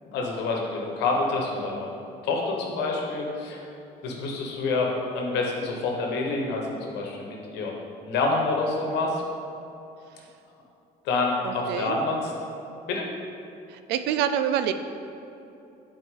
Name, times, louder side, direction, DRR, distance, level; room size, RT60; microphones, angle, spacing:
voice 1, 0.1-1.9 2.2-3.6 4.0-7.7 8.1-9.2 11.0-12.3 12.9-13.1, left 3 dB, 85° left, 0 dB, 1.2 m, -27 dB
voice 2, 11.4-12.0 13.7-14.7, right 9 dB, 85° right, 9 dB, 0.4 m, -26 dB
8.0 x 4.5 x 3.8 m, 2.8 s
cardioid pair, 110°, 17 cm